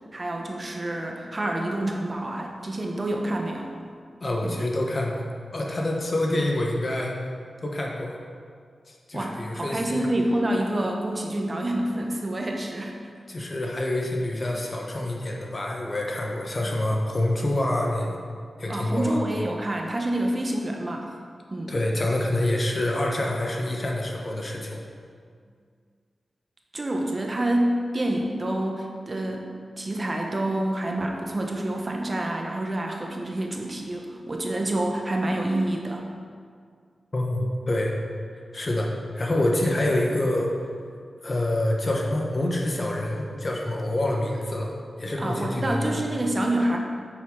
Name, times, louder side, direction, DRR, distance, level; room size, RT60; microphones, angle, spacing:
voice 1, 0.1-3.7 4.4-4.5 9.1-12.9 18.7-21.1 21.5-21.7 26.7-29.5 29.8-36.0 45.2-46.8, right 1 dB, 40° right, 1 dB, 1.1 m, -27 dB
voice 2, 4.2-5.3 5.5-7.2 7.6-8.2 8.9-10.0 13.3-18.2 18.6-19.2 21.7-24.8 37.1-37.9 38.5-40.5 41.2-44.7 45.0-46.0, left 1 dB, 45° left, -1 dB, 1.3 m, -26 dB
8.4 x 6.5 x 3.9 m, 2.1 s
cardioid pair, 60°, 0 cm